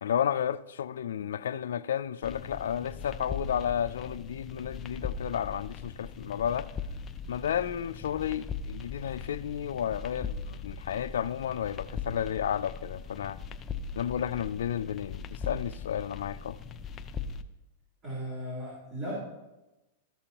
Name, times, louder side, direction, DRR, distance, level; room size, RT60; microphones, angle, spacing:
voice 1, 0.0-6.7 7.3-13.4 14.0-16.6, left 9 dB, 85° left, 0.3 m, -32 dB
sound 1, 2.2-17.4, left 5 dB, 25° left, 0.5 m, -40 dB
voice 2, 18.0-19.1, equal, 35° right, 3.5 m, -37 dB
13.5 x 6.9 x 2.9 m
hypercardioid pair, 135°, 0 cm